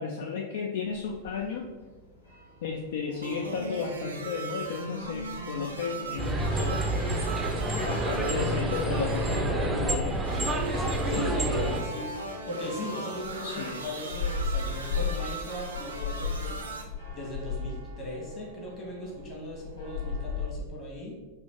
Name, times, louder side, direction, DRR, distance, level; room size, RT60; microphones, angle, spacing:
voice 1, 0.0-1.7 2.6-6.8 7.8-10.2 11.1-11.9 13.4-13.8, left 5 dB, 55° left, 2 dB, 0.3 m, -34 dB
sound 1, 0.8-20.5, left 5 dB, 80° left, 1.1 m, -39 dB
sound 2, 3.2-16.8, right 2 dB, 75° right, 0.5 m, -38 dB
sound 3, 6.2-11.8, right 2 dB, 10° right, 0.5 m, -28 dB
voice 2, 7.6-8.3 11.0-12.1 12.5-16.5 17.1-21.1, left 1 dB, 30° left, -3 dB, 1.4 m, -38 dB
4.2 x 2.5 x 3.5 m, 1.4 s
figure-of-eight pair, 90°, 0 cm